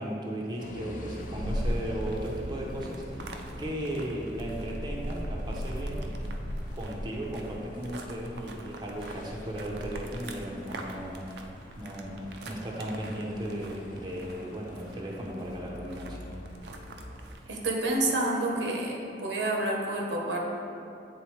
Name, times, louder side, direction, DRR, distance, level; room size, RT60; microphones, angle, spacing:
voice 1, 0.0-6.1 6.7-11.2 11.8-16.2, equal, 25° right, -3 dB, 0.6 m, -36 dB
sound 1, 0.6-17.2, equal, 50° left, 0.6 m, -46 dB
sound 2, 1.2-18.1, equal, 65° right, 0.5 m, -39 dB
voice 2, 17.5-20.4, right 2 dB, 85° right, -1 dB, 0.9 m, -29 dB
8.4 x 3.9 x 3.1 m, 2.6 s
head